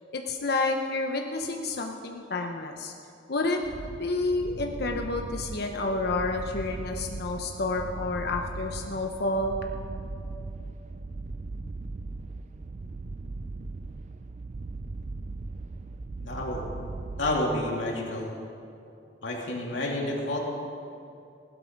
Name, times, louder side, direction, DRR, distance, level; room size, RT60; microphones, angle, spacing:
voice 1, 0.1-2.9 3.3-3.6 3.9-9.6, left 2 dB, 60° left, 3 dB, 0.8 m, -29 dB
sound 1, 3.6-17.9, right 3 dB, 40° right, 0.4 m, -39 dB
voice 2, 16.2-16.6 17.2-18.3 19.2-20.4, left 1 dB, 80° left, -2 dB, 2.6 m, -29 dB
16.0 x 12.0 x 5.2 m, 2.6 s
head